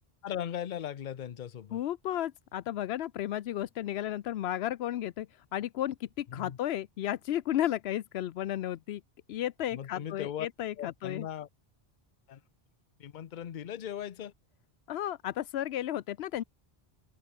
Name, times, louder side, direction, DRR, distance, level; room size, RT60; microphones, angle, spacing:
voice 1, 0.2-1.8 6.3-6.6 9.7-10.5 10.8-11.5 12.3-12.4 13.0-14.3, left 10 dB, 55° left, 0.8 m, -38 dB
voice 2, 1.7-9.0 9.3-11.3 14.9-16.4, left 12 dB, 85° left, 0.8 m, -33 dB
open air
omnidirectional pair, 1.0 m